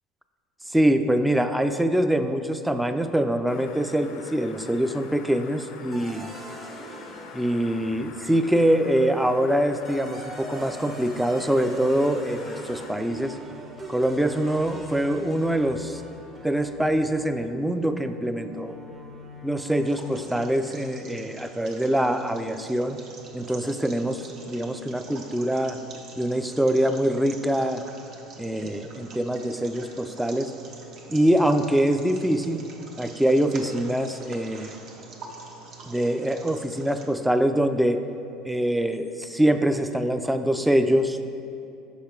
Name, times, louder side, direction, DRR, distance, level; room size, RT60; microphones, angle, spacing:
voice 1, 0.7-6.3 7.3-13.4 13.9-16.0 16.4-18.8 19.4-23.0 23.3-25.8 26.2-27.8 28.4-30.5 31.1-32.6 33.0-34.8 35.8-38.0 38.4-41.2, right 1 dB, 5° right, 9 dB, 0.4 m, -24 dB
sound 1, 3.5-12.9, left 6 dB, 70° left, 0.4 m, -44 dB
sound 2, 5.9-8.5 9.6-20.7, right 1 dB, 30° right, 0.8 m, -42 dB
sound 3, 19.7-37.1, right 4 dB, 60° right, 0.9 m, -45 dB
5.6 x 4.8 x 4.4 m, 2.7 s
hypercardioid pair, 85°, 0 cm